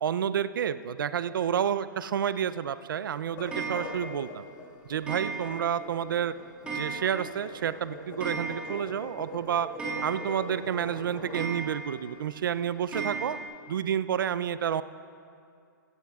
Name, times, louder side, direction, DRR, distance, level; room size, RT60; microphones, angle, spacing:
voice 1, 0.0-4.4 4.8-6.3 6.7-9.7 10.0-13.4 13.7-14.8, right 9 dB, 75° right, 14 dB, 0.4 m, -30 dB
sound 1, 3.3-11.5, left 2 dB, 30° left, 1.7 m, -42 dB
Clock, 3.5-4.2 5.1-5.8 6.1-6.2 6.7-7.4 7.7-7.8 8.0-9.0 9.3-9.4 9.8-10.6 11.3-12.1 12.9-13.4, right 4 dB, 10° right, 2.0 m, -36 dB
16.0 x 15.0 x 2.4 m, 2.4 s
hypercardioid pair, 160°, 11 cm